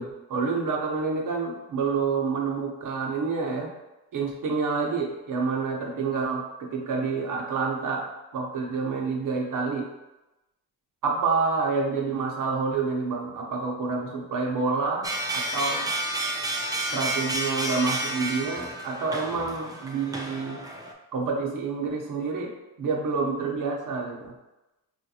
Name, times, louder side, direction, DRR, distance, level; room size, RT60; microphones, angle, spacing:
voice 1, 0.0-3.7 4.1-8.0 8.3-9.9 11.0-15.9 16.9-20.6 21.1-24.3, right 4 dB, 50° right, 0 dB, 0.8 m, -28 dB
sound 1, 15.0-20.9, right 1 dB, 10° right, 0.3 m, -31 dB
3.7 x 2.5 x 2.8 m, 1.0 s
cardioid pair, 90°, 41 cm